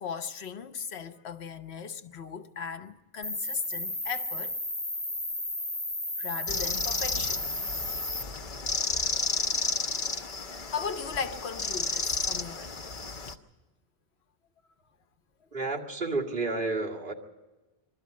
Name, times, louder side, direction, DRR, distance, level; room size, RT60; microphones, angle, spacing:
voice 1, 0.0-4.6 6.2-7.4 10.3-12.8, left 6 dB, 80° left, 1.2 m, -37 dB
Cricket, 3.2-8.2, left 1 dB, 30° left, 2.0 m, -33 dB
sound 1, 6.5-13.3, left 3 dB, 55° left, 1.0 m, -32 dB
voice 2, 15.5-17.1, right 3 dB, 55° right, 2.3 m, -31 dB
22.5 x 13.0 x 9.4 m
omnidirectional pair, 1.1 m